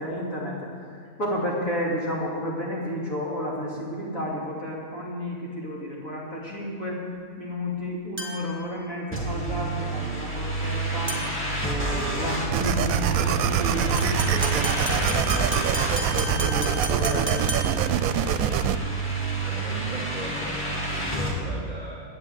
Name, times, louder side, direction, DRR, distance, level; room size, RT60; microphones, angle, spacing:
voice 1, 0.0-7.0 7.4-11.2 11.6-17.7, equal, 65° left, -4 dB, 3.3 m, -32 dB
sound 1, 8.2-8.6 11.1-11.5 14.0-17.9, equal, 10° right, 1.5 m, -34 dB
sound 2, 9.1-21.3, right 3 dB, 10° left, 2.3 m, -29 dB
sound 3, 12.5-18.8, right 9 dB, 80° right, 1.0 m, -25 dB
voice 2, 19.4-22.0, equal, 40° left, -8 dB, 3.8 m, -37 dB
12.0 x 8.9 x 8.0 m, 2.1 s
omnidirectional pair, 1.5 m